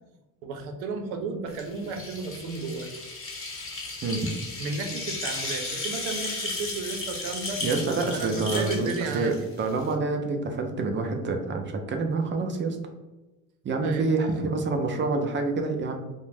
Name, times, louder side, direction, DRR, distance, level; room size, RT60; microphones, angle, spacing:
voice 1, 0.4-3.0 4.6-7.6 8.1-9.5 13.8-14.3, right 4 dB, 90° right, 4 dB, 0.6 m, -33 dB
sound 1, 1.5-9.9, left 2 dB, 30° left, 0.9 m, -35 dB
voice 2, 7.6-12.8 13.6-16.0, right 3 dB, 30° right, 4 dB, 0.4 m, -27 dB
2.5 x 2.1 x 3.2 m, 1.1 s
supercardioid pair, 85°, 41 cm